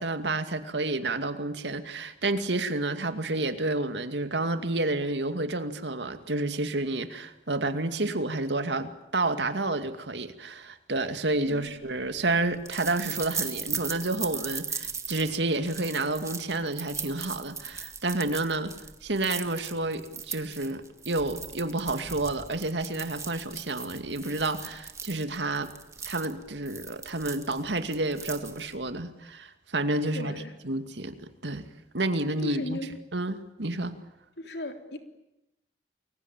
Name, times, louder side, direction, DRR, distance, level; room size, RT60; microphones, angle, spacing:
voice 1, 0.0-18.7 19.0-25.7 26.0-31.2 31.4-31.6 31.9-33.9, right 2 dB, 85° right, 8 dB, 2.4 m, -30 dB
sound 1, 11.4-28.9, right 5 dB, 15° right, 1.9 m, -39 dB
voice 2, 30.1-30.5 32.4-33.0 34.4-35.0, left 1 dB, 70° left, 6 dB, 3.5 m, -36 dB
29.0 x 22.0 x 9.1 m, 0.93 s
head